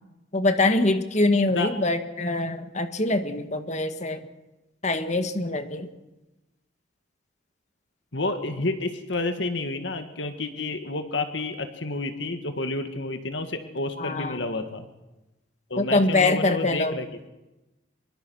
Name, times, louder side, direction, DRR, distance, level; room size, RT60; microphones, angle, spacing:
voice 1, 0.3-4.2 4.8-5.9 14.0-14.4 15.8-17.0, left 2 dB, 35° left, 8 dB, 1.7 m, -24 dB
voice 2, 8.1-14.9 15.7-17.1, left 2 dB, 65° left, 8 dB, 1.8 m, -30 dB
26.0 x 23.0 x 6.3 m, 1.0 s
head